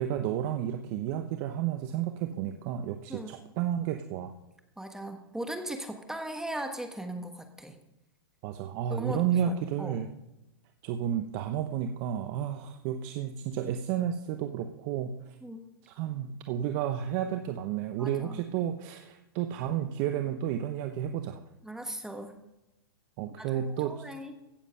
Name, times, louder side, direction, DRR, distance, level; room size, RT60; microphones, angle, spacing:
voice 1, 0.0-4.3 8.4-10.1 10.8-15.4 15.8-21.4 23.2-24.0, right 10 dB, 45° right, 7 dB, 0.9 m, -32 dB
voice 2, 4.8-7.8 8.9-10.0 15.4-15.6 18.0-18.4 21.6-22.4 23.4-24.3, right 1 dB, 5° right, 6 dB, 1.3 m, -38 dB
16.0 x 7.3 x 5.7 m, 0.93 s
hypercardioid pair, 120°, 13 cm